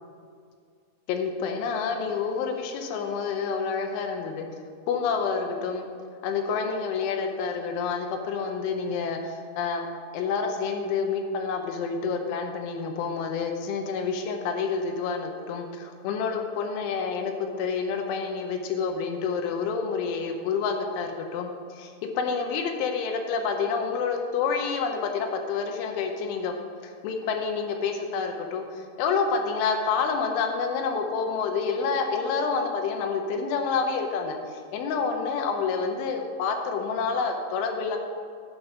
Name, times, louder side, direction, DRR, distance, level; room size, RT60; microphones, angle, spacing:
voice 1, 1.1-4.5 4.9-5.9 6.2-9.9 10.1-26.5 26.8-38.0, left 5 dB, 80° left, 4 dB, 3.2 m, -28 dB
11.0 x 5.3 x 5.9 m, 2.2 s
omnidirectional pair, 5.6 m